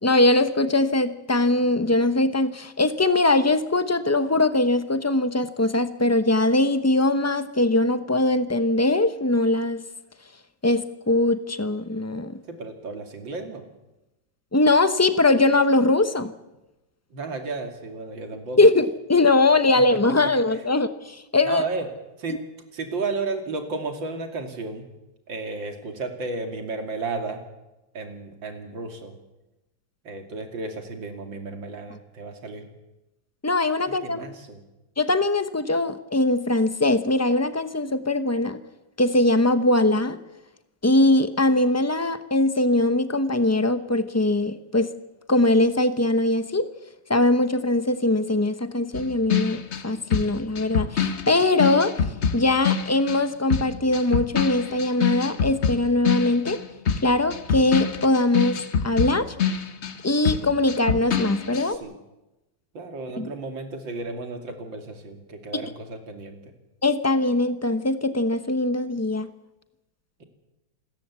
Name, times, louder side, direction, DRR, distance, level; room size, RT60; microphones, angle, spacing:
voice 1, 0.0-9.8 10.6-12.4 14.5-16.3 18.6-21.6 22.3-22.4 33.4-34.3 35.0-38.6 39.0-40.2 40.8-44.9 45.3-46.7 47.1-51.9 52.3-56.6 57.0-59.3 60.0-61.8 63.2-63.3 66.8-69.3, left 2 dB, 15° left, 11 dB, 0.5 m, -21 dB
voice 2, 12.5-13.6 17.1-18.6 19.8-19.9 20.5-20.6 21.4-21.9 22.2-22.4 22.7-24.9 25.3-27.4 27.9-29.2 30.0-32.7 33.9-34.6 61.5-61.9 62.7-66.5, right 3 dB, 75° right, 5 dB, 3.4 m, -33 dB
sound 1, 48.9-53.2 53.5-60.0 60.2-61.7, left 7 dB, 40° left, 1.2 m, -26 dB
27.5 x 13.5 x 8.3 m, 0.98 s
omnidirectional pair, 2.1 m